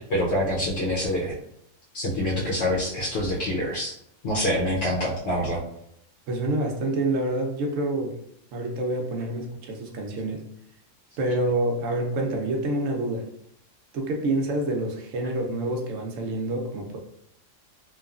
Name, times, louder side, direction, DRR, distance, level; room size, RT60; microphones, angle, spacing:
voice 1, 0.1-1.3 1.9-3.9 4.2-5.6, left 1 dB, 65° left, -5 dB, 0.9 m, -26 dB
voice 2, 6.3-8.2 8.5-10.4 11.2-13.3 13.9-17.0, right 1 dB, 75° right, 1 dB, 1.0 m, -27 dB
3.0 x 2.3 x 2.3 m, 0.72 s
omnidirectional pair, 1.4 m